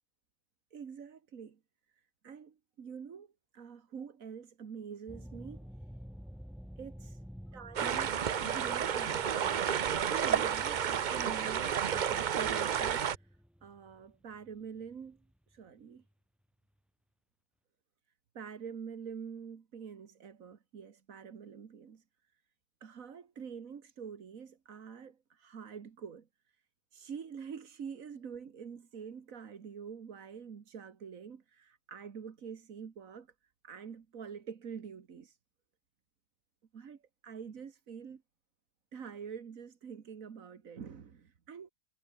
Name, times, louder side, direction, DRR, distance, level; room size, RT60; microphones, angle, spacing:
voice 1, 0.7-1.6 1.9-5.7 6.8-7.2 7.5-9.5 10.1-16.0 18.4-22.0 22.8-26.6 26.9-33.3 33.6-35.4 36.7-38.2 38.9-41.7, right 6 dB, 80° right, 1.9 m, -46 dB
sound 1, 5.1-16.1, equal, ahead, 3.1 m, -51 dB
sound 2, 7.8-13.2, right 8 dB, 50° right, 0.6 m, -31 dB
omnidirectional pair, 1.4 m